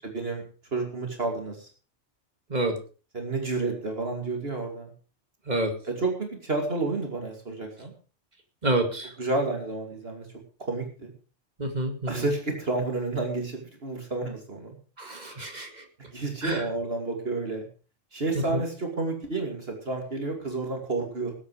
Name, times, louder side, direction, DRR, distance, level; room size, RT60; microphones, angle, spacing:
voice 1, 0.0-0.4 0.7-1.7 3.1-4.9 5.9-7.9 9.2-10.3 10.7-11.1 12.1-14.8 16.1-17.7 18.1-21.3, right 3 dB, 55° right, 3 dB, 2.8 m, -30 dB
voice 2, 8.6-9.1 11.6-12.2 15.0-15.8 16.4-16.6 18.5-18.6, right 2 dB, 35° right, 5 dB, 2.3 m, -28 dB
19.5 x 8.5 x 4.8 m, 0.37 s
omnidirectional pair, 1.3 m